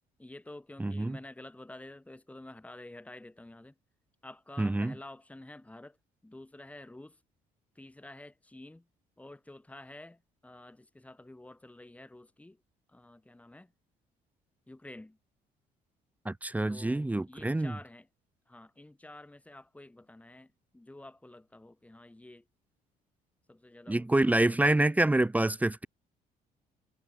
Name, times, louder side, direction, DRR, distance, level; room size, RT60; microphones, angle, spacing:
voice 1, 0.2-3.8 4.2-6.0 6.2-7.2 7.7-8.9 9.2-12.6 12.9-13.7 14.7-15.2 16.7-18.1 18.5-22.5 23.5-24.4, left 1 dB, 10° left, 4.7 m, -50 dB
voice 2, 0.8-1.2 4.6-4.9 16.2-17.7 23.9-25.9, right 2 dB, 10° right, 1.0 m, -27 dB
cardioid pair, 105°, 16 cm